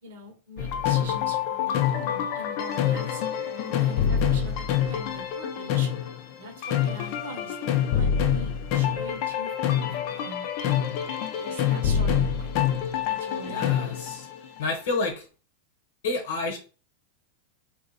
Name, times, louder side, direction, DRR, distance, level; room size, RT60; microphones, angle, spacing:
voice 1, 0.0-3.2 3.5-5.9 6.4-10.5 11.3-12.5 12.9-13.8, right 1 dB, 75° right, 3 dB, 1.0 m, -42 dB
sound 1, 0.6-14.6, left 9 dB, 55° left, 0.5 m, -26 dB
voice 2, 13.5-14.3 14.6-15.3 16.0-16.6, left 3 dB, 70° left, 4 dB, 0.9 m, -29 dB
2.8 x 2.4 x 3.8 m, 0.35 s
hypercardioid pair, 115°, 0 cm